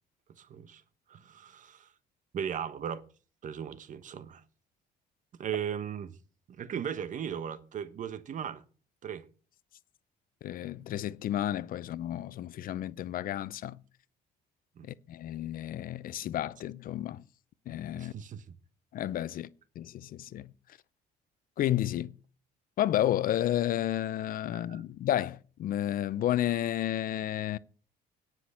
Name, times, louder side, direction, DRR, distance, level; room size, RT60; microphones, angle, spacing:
voice 1, 0.4-0.8 1.1-1.9 2.3-3.0 3.4-4.4 5.4-6.2 6.5-8.6 9.0-9.2 14.8-14.9 17.9-18.5 24.5-24.8, right 8 dB, 50° right, 1.2 m, -37 dB
voice 2, 10.4-13.8 14.8-17.2 17.7-18.1 18.9-19.5 19.8-20.5 21.6-22.1 22.8-27.6, left 12 dB, 60° left, 0.6 m, -31 dB
9.8 x 6.2 x 8.3 m
cardioid pair, 110°, 17 cm